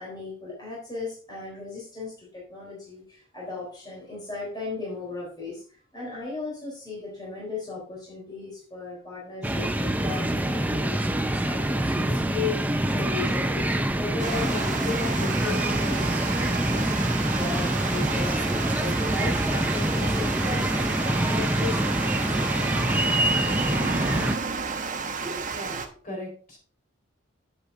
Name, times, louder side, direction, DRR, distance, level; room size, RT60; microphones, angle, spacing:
voice 1, 0.0-16.9 17.3-18.4 18.8-22.7, left 4 dB, 20° left, -5 dB, 3.8 m, -36 dB
sound 1, 9.4-24.4, right 1 dB, 10° right, 0.6 m, -25 dB
Water, 14.2-25.9, right 4 dB, 40° right, 1.3 m, -32 dB
voice 2, 24.9-26.6, equal, 40° left, -1 dB, 4.6 m, -39 dB
10.0 x 8.2 x 2.7 m, 0.41 s
head